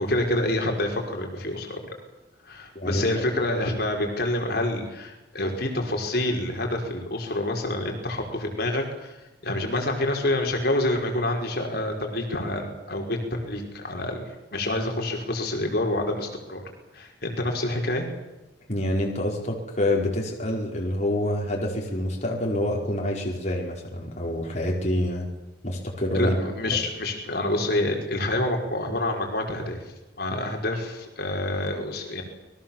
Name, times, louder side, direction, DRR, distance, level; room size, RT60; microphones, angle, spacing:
voice 1, 0.0-1.8 2.5-9.2 9.4-14.2 14.5-16.6 16.9-18.1 26.1-29.8 30.2-32.2, left 1 dB, 60° left, 1 dB, 5.3 m, -27 dB
voice 2, 2.7-3.1 18.7-25.3 25.6-26.4, left 1 dB, 40° left, -1 dB, 5.0 m, -27 dB
29.0 x 22.0 x 7.4 m, 1.0 s
head